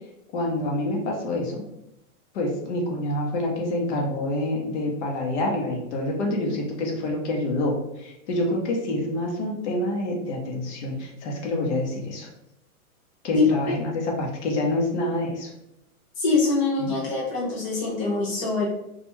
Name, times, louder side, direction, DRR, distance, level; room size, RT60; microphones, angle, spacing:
voice 1, 0.3-1.6 2.3-12.3 13.2-15.5 16.8-16.9, left 1 dB, 50° left, 0 dB, 0.8 m, -27 dB
voice 2, 13.3-13.8 16.2-18.6, left 3 dB, 20° left, -6 dB, 0.5 m, -24 dB
2.4 x 2.3 x 3.0 m, 0.84 s
hypercardioid pair, 140°, 44 cm